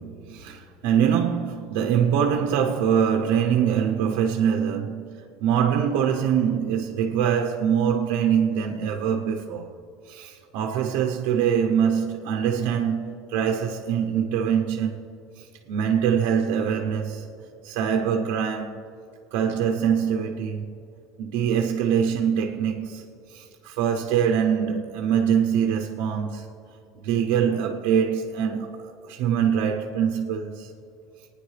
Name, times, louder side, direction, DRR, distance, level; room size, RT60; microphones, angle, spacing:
voice 1, 0.0-9.7 10.1-15.1 15.4-17.3 17.6-18.8 19.3-20.7 21.2-23.0 23.3-26.5 27.0-30.7, right 8 dB, 70° right, 0.7 m, -24 dB
26.0 x 9.6 x 3.3 m
cardioid pair, 150°, 0 cm